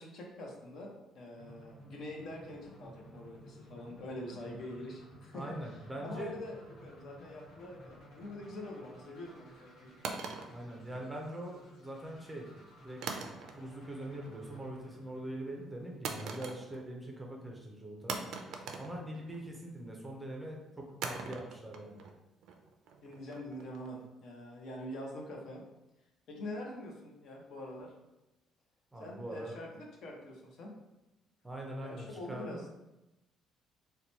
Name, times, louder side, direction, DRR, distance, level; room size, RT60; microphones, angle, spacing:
voice 1, 0.0-5.5 6.0-10.0 23.0-25.6 26.3-27.9 29.0-30.7 31.8-32.6, left 1 dB, 55° left, 0 dB, 0.7 m, -45 dB
sound 1, 1.4-16.3, equal, 80° left, 1.0 m, -55 dB
voice 2, 5.3-6.3 10.5-12.5 12.8-13.0 13.5-18.2 18.8-22.0 28.9-29.6 31.4-32.7, right 1 dB, 10° right, -1 dB, 0.5 m, -43 dB
sound 2, 10.0-11.4 13.0-13.9 14.2-14.6 16.0-17.0 17.3-17.4 18.1-19.6 21.0-24.0, right 5 dB, 65° right, 0.4 m, -42 dB
2.9 x 2.2 x 4.0 m, 0.97 s
cardioid pair, 150°, 0 cm